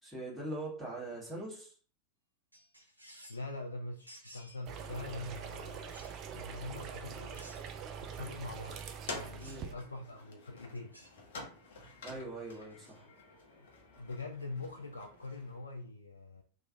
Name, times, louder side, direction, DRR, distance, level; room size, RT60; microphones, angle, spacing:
voice 1, 0.0-1.7 9.4-9.7 12.0-13.1, right 2 dB, ahead, 1.5 m, -42 dB
sound 1, 2.5-3.5 4.1-4.6 5.9-6.2 7.3-7.9 9.4-9.7 10.7-11.2 12.5-13.0, equal, 85° right, 0.6 m, -56 dB
voice 2, 3.3-6.0 6.3-7.5 8.0-8.8 9.1-10.9 14.0-16.4, left 2 dB, 80° left, 0.3 m, -43 dB
sound 2, 4.7-9.7, right 7 dB, 35° right, 0.4 m, -44 dB
sound 3, 8.8-15.6, left 3 dB, 55° left, 0.8 m, -49 dB
3.0 x 2.2 x 2.6 m
figure-of-eight pair, 90°, 0 cm